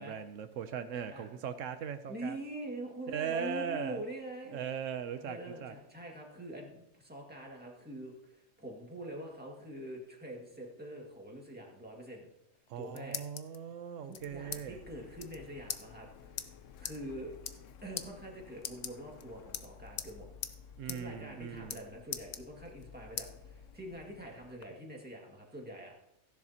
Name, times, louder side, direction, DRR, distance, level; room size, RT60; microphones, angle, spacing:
voice 1, 0.0-2.4 3.1-4.0 4.5-5.7 12.7-14.8 20.8-21.8, right 7 dB, 80° right, 9 dB, 1.0 m, -39 dB
voice 2, 2.1-4.6 5.2-12.3 12.8-13.2 14.0-16.5 16.8-17.3 17.8-20.3 20.8-25.9, right 1 dB, 5° right, -1 dB, 1.9 m, -44 dB
sound 1, 12.5-13.6 14.1-14.6 14.9-15.0 15.2-15.4 15.7-15.8 16.4-16.5 16.8-17.0 17.3-17.7 18.0-18.1 18.6-19.2 19.5-20.1 20.4-20.6 20.9-21.0 21.3-21.8 22.1-22.8 23.2-23.3 23.8-24.7, left 7 dB, 50° left, 0.5 m, -40 dB
Printer, 14.2-24.5, left 7 dB, 75° left, 1.0 m, -55 dB
15.5 x 10.5 x 2.9 m, 0.86 s
omnidirectional pair, 1.3 m